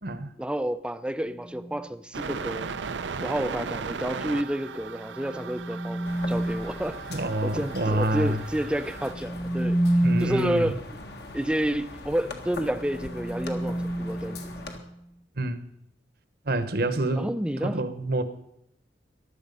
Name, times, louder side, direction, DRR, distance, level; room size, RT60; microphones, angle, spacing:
voice 1, 0.4-2.7 3.2-7.0 7.4-9.8 10.2-10.8 11.3-14.4 17.1-17.8, equal, 5° right, 0.5 m, -30 dB
sound 1, 1.4-1.8 5.0-6.8 8.9-10.6 12.6-15.0, right 1 dB, 35° left, 1.0 m, -29 dB
sound 2, 2.1-9.1, right 5 dB, 85° right, 0.6 m, -37 dB
sound 3, 6.1-14.8, left 2 dB, 60° left, 1.7 m, -42 dB
voice 2, 7.1-8.4 10.0-10.7 15.4-15.6 16.4-17.3 17.6-18.2, right 1 dB, 55° right, 1.1 m, -27 dB
15.0 x 11.5 x 5.4 m
head